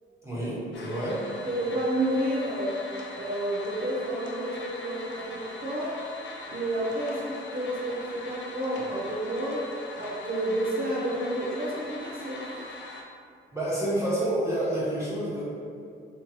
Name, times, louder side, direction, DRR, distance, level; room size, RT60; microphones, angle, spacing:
voice 1, 0.2-1.2 13.5-15.4, right 1 dB, 15° right, -9 dB, 1.5 m, -28 dB
sound 1, 0.7-13.0, left 2 dB, 65° left, 0.6 m, -42 dB
voice 2, 1.4-2.8 3.1-6.0 6.5-9.7 9.9-12.7, right 1 dB, 45° right, -5 dB, 0.8 m, -30 dB
3.5 x 3.0 x 2.9 m, 2.4 s
cardioid pair, 90°, 20 cm